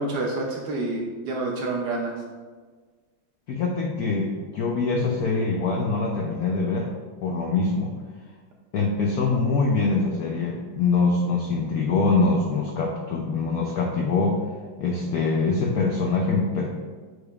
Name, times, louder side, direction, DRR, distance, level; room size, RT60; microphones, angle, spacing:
voice 1, 0.0-2.1, right 2 dB, 65° right, -1 dB, 1.1 m, -28 dB
voice 2, 3.5-6.9 7.2-7.9 8.7-14.4 14.8-16.7, left 3 dB, 80° left, 0 dB, 0.8 m, -24 dB
7.8 x 5.1 x 2.4 m, 1.4 s
omnidirectional pair, 2.3 m